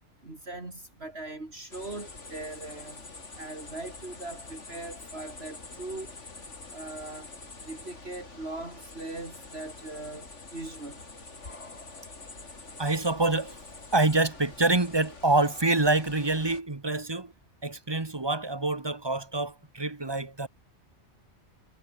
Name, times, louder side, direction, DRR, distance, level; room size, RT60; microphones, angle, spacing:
voice 1, 0.2-3.0 3.4-6.1 6.7-7.3 7.6-11.0, right 2 dB, 60° right, 4.4 m, -40 dB
sound 1, 1.7-16.6, left 3 dB, 80° left, 3.6 m, -46 dB
voice 2, 12.8-13.6 13.9-17.3 17.6-20.5, right 2 dB, 20° right, 1.4 m, -26 dB
omnidirectional pair, 1.2 m